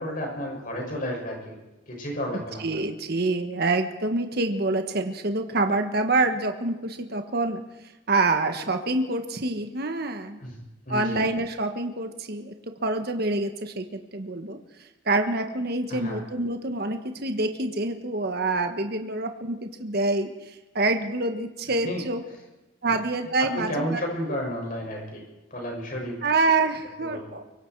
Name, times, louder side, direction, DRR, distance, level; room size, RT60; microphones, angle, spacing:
voice 1, 0.0-1.6 1.9-2.6 10.4-10.6 10.9-11.2 15.9-16.2 21.8-22.0 23.4-25.2 25.5-26.2 27.0-27.3, equal, 45° left, 0 dB, 7.0 m, -32 dB
voice 2, 2.3-7.6 8.1-10.4 10.9-12.5 12.8-14.6 15.0-22.2 22.8-24.0 26.2-27.7, right 2 dB, 50° right, 6 dB, 1.4 m, -26 dB
24.0 x 24.0 x 4.7 m, 1.1 s
head